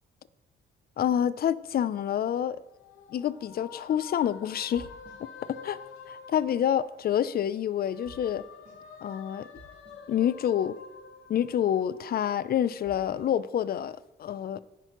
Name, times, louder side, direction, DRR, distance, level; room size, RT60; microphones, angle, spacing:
voice 1, 1.0-2.6 3.1-4.9 5.5-5.8 6.1-8.4 9.0-9.5 10.1-10.8 11.3-14.6, left 10 dB, 50° left, 0.5 m, -27 dB
sound 1, 2.5-7.3 7.6-12.4, left 6 dB, 85° left, 1.0 m, -48 dB
sound 2, 4.5-13.3, right 1 dB, 50° right, 3.9 m, -57 dB
17.0 x 5.7 x 3.0 m
cardioid pair, 90°, 20 cm